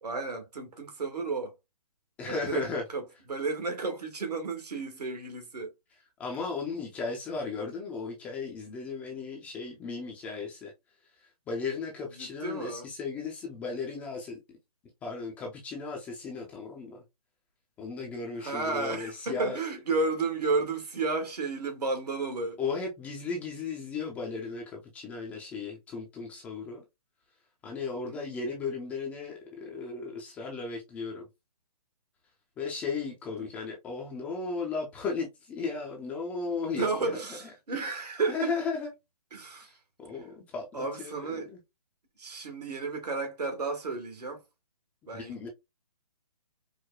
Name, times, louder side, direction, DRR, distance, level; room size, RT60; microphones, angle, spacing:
voice 1, 0.0-1.5 2.3-2.6 2.9-3.0 3.3-5.7 12.2-12.9 18.3-22.6 27.9-28.2 33.4-33.5 36.8-38.5 39.3-39.7 40.7-41.5 42.2-44.4 45.1-45.5, right 3 dB, 80° right, 1.4 m, -32 dB
voice 2, 2.2-2.8 6.2-10.7 11.5-14.4 15.0-17.0 17.8-19.6 22.6-26.8 27.6-31.3 32.6-37.4 38.3-38.9 39.6-39.7 40.0-41.6 45.1-45.5, left 4 dB, 5° left, 0.3 m, -35 dB
4.7 x 2.1 x 2.2 m
hypercardioid pair, 145°, 20 cm